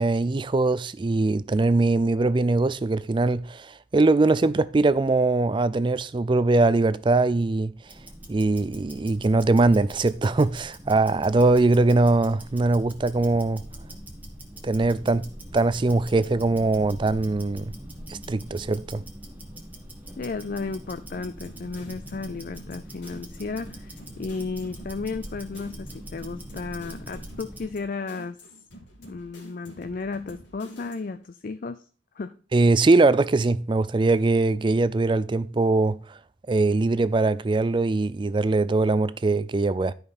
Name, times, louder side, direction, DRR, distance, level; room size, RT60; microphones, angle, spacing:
voice 1, 0.0-7.7 8.3-13.6 14.6-15.3 15.5-17.7 18.1-19.0 32.5-36.0 36.5-39.9, right 3 dB, 25° right, 0.4 m, -22 dB
Tick-tock, 7.8-27.8, right 1 dB, 10° right, 1.5 m, -42 dB
voice 2, 20.2-28.4 29.1-31.8 32.2-32.4, left 4 dB, 50° left, 0.4 m, -34 dB
sound 1, 21.1-31.2, equal, 85° left, 2.7 m, -48 dB
12.0 x 5.3 x 4.2 m
head